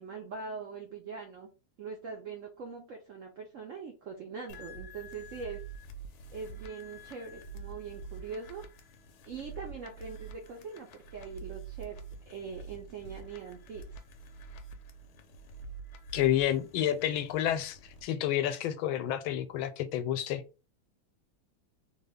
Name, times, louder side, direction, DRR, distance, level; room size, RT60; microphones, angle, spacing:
voice 1, 0.0-1.5 1.8-5.6 6.3-8.6 9.2-13.8, right 5 dB, 75° right, 0.7 m, -42 dB
sound 1, 4.5-18.0, right 4 dB, 70° left, 0.9 m, -47 dB
voice 2, 16.1-20.4, left 11 dB, 90° left, 1.4 m, -30 dB
3.3 x 2.2 x 3.5 m
omnidirectional pair, 2.1 m